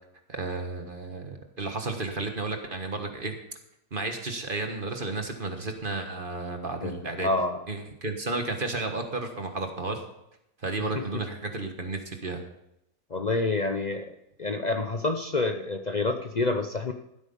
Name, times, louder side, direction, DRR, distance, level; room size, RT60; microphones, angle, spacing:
voice 1, 0.3-3.3 3.9-7.3 7.7-10.0 10.6-12.4, right 3 dB, 30° right, 5 dB, 1.3 m, -32 dB
voice 2, 7.2-7.6 10.9-11.0 13.1-14.1 14.4-16.9, left 3 dB, 70° left, 5 dB, 0.4 m, -27 dB
15.0 x 8.3 x 5.4 m, 0.82 s
omnidirectional pair, 1.9 m